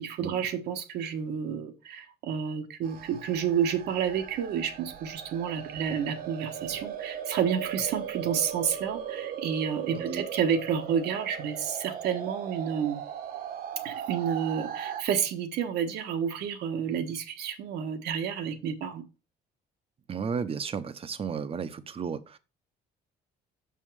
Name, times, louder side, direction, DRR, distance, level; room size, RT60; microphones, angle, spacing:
voice 1, 0.0-13.0 13.8-19.0, right 8 dB, 75° right, 1.3 m, -30 dB
sound 1, 2.8-15.0, right 9 dB, 60° right, 1.2 m, -38 dB
voice 2, 9.9-10.2 20.1-22.4, right 6 dB, 35° right, 0.8 m, -33 dB
6.4 x 5.5 x 4.7 m
cardioid pair, 110°, 17 cm